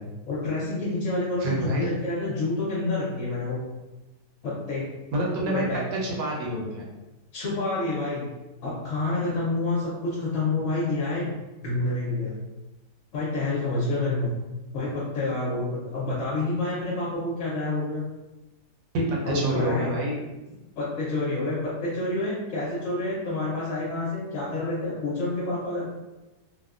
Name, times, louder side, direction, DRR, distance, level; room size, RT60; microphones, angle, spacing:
voice 1, 0.0-3.6 4.4-4.9 5.5-5.8 7.3-8.3 8.6-11.3 11.6-12.3 13.1-14.3 14.7-18.0 19.2-19.9 20.8-25.9, left 2 dB, 60° left, -7 dB, 0.9 m, -28 dB
voice 2, 1.4-1.9 5.1-5.6 5.9-6.9 18.9-20.2, right 1 dB, 85° right, -3 dB, 1.4 m, -27 dB
3.3 x 2.2 x 2.4 m, 1.1 s
omnidirectional pair, 1.9 m